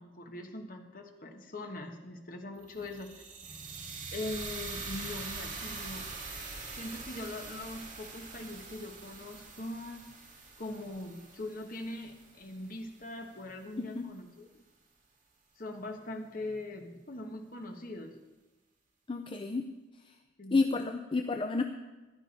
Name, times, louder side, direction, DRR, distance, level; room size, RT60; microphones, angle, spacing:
voice 1, 0.0-3.3 4.1-6.1 6.7-10.1 10.6-14.6 15.6-18.2 20.4-20.6, left 2 dB, 45° left, 4 dB, 1.3 m, -41 dB
sound 1, 2.6-12.7, right 4 dB, 40° right, 2.6 m, -44 dB
voice 2, 13.8-14.1 19.1-19.7 20.1-20.2 20.5-21.6, left 3 dB, 25° left, 6 dB, 0.4 m, -30 dB
14.5 x 11.0 x 4.2 m, 1.2 s
head